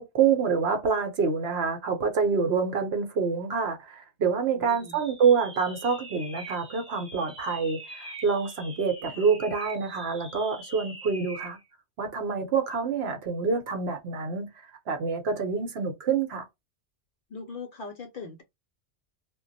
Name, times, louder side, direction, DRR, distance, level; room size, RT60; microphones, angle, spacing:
voice 1, 0.0-11.6 12.0-14.5 14.9-16.4, right 5 dB, 65° right, 0.9 m, -27 dB
voice 2, 4.5-5.0 9.1-9.2 17.3-18.4, left 4 dB, 60° left, 0.6 m, -40 dB
sound 1, 4.7-11.6, right 2 dB, 10° right, 0.5 m, -44 dB
2.2 x 2.0 x 3.8 m
omnidirectional pair, 1.2 m